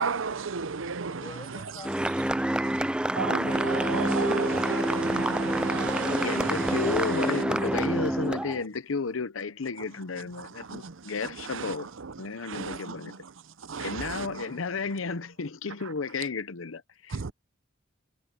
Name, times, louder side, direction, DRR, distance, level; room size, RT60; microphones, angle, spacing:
voice 1, 0.0-1.6 3.1-7.4 10.4-12.1 12.4-13.3 13.6-14.5 17.1-17.3, right 5 dB, 85° right, 0.7 m, -34 dB
voice 2, 1.0-3.2, left 2 dB, 20° left, 2.1 m, -48 dB
sound 1, 1.8-8.6, right 1 dB, 5° right, 0.3 m, -27 dB
voice 3, 6.2-11.9 12.2-13.3 13.8-17.2, left 4 dB, 85° left, 0.8 m, -33 dB
head